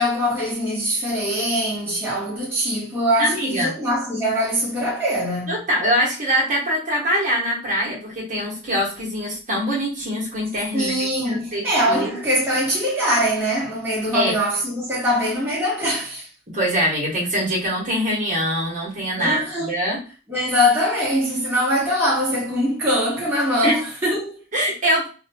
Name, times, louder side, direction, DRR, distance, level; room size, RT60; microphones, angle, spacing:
voice 1, 0.0-5.6 10.7-16.3 19.2-19.8 20.3-24.4, equal, 10° right, 0.9 m, -22 dB
voice 2, 3.2-3.7 5.5-12.2 14.1-14.3 16.5-20.0 23.6-23.7 24.5-25.1, equal, 40° right, 0.9 m, -23 dB
2.5 x 2.1 x 2.6 m
head